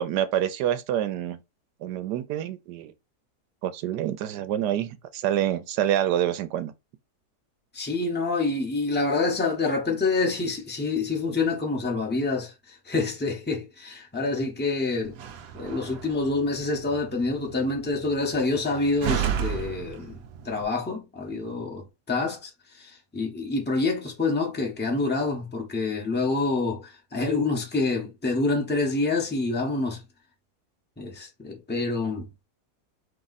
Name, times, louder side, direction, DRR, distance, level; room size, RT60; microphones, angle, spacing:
voice 1, 0.0-1.4 1.8-2.9 3.6-6.7, right 11 dB, 85° right, 1.2 m, -27 dB
voice 2, 7.7-12.5 12.8-15.2 15.5-20.2 20.4-22.5 22.8-30.0 31.0-32.3, left 3 dB, 10° left, 0.8 m, -27 dB
Slam, 15.0-20.6, right 8 dB, 70° right, 1.0 m, -34 dB
3.6 x 3.1 x 4.0 m
omnidirectional pair, 1.7 m